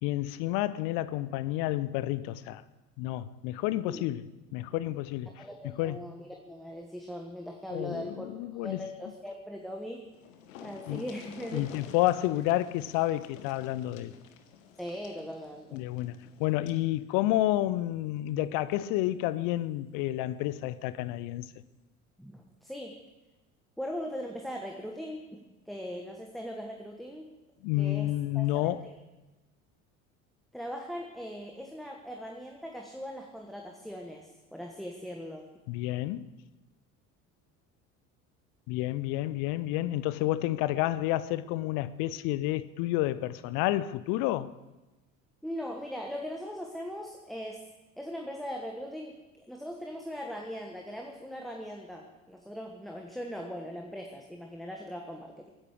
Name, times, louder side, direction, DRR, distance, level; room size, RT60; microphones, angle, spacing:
voice 1, 0.0-2.6 3.0-4.2 4.5-5.3 5.8-6.1 7.7-8.8 10.9-11.0 11.5-14.1 15.7-16.1 16.4-21.4 27.6-28.8 35.7-36.3 38.7-44.5, left 15 dB, 50° left, 0.7 m, -30 dB
voice 2, 5.4-8.3 8.5-10.1 10.6-11.7 14.8-15.9 22.2-23.0 23.8-27.3 27.8-28.9 30.5-35.4 45.4-47.7 48.0-55.5, equal, ahead, 1.4 m, -40 dB
sound 1, 9.8-9.9 10.1-16.9 18.2-18.3 18.7-18.8, left 8 dB, 65° left, 1.3 m, -51 dB
23.0 x 9.9 x 4.8 m
figure-of-eight pair, 65°, 42 cm